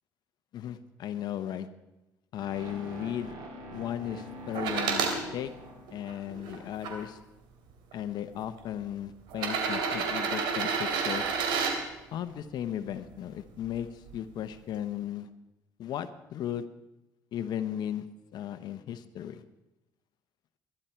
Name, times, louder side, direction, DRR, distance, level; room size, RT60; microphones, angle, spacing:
voice 1, 0.5-1.7 2.3-3.3 3.7-5.5 5.9-7.2 7.9-11.3 12.1-15.3 15.8-16.6 17.3-18.0 18.3-19.4, left 10 dB, 65° left, 11 dB, 1.0 m, -36 dB
sound 1, 2.4-6.5, equal, 65° right, 6.0 m, -45 dB
sound 2, 4.5-5.2 5.9-6.9 7.9-8.0 9.3-11.8 13.6-13.7, right 5 dB, 80° right, 2.9 m, -29 dB
22.0 x 11.5 x 4.5 m, 0.99 s
supercardioid pair, 80°, 8 cm